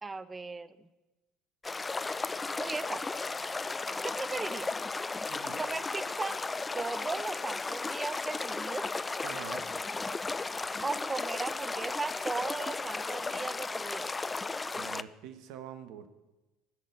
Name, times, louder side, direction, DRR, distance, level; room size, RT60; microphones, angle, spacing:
voice 1, 0.0-0.9 2.6-3.1 3.7-4.8 5.5-6.4 6.7-8.9 10.8-14.1, right 3 dB, 20° right, 14 dB, 0.8 m, -37 dB
sound 1, 1.6-15.0, left 3 dB, 20° left, 0.4 m, -35 dB
voice 2, 5.3-5.6 9.2-9.6 14.7-16.1, right 9 dB, 60° right, 10 dB, 1.2 m, -45 dB
16.5 x 6.5 x 8.3 m, 1.1 s
hypercardioid pair, 65°, 0 cm